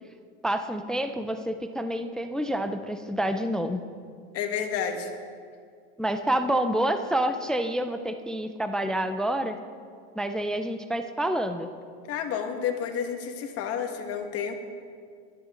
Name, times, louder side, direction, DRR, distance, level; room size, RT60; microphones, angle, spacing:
voice 1, 0.4-3.8 6.0-9.6 10.2-11.7, right 1 dB, ahead, 8 dB, 0.3 m, -28 dB
voice 2, 4.3-5.1 12.1-14.5, left 7 dB, 45° left, 4 dB, 1.8 m, -30 dB
22.5 x 11.0 x 3.8 m, 2.1 s
supercardioid pair, 140°, 34 cm